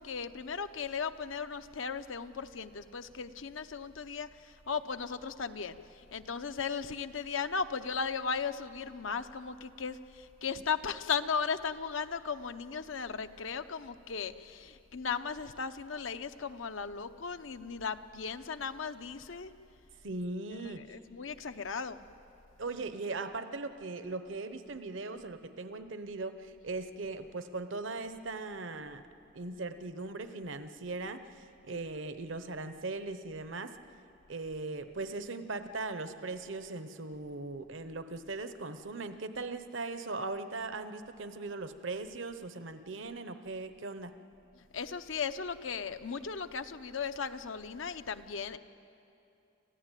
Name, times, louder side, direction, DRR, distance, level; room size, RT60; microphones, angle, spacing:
voice 1, 0.0-19.5 20.6-22.0 44.7-48.6, left 5 dB, 75° left, 10 dB, 0.8 m, -36 dB
voice 2, 20.0-21.0 22.6-29.0 29.3-33.8 34.3-44.1, right 3 dB, 70° right, 10 dB, 0.9 m, -39 dB
27.0 x 15.0 x 9.1 m, 2.7 s
head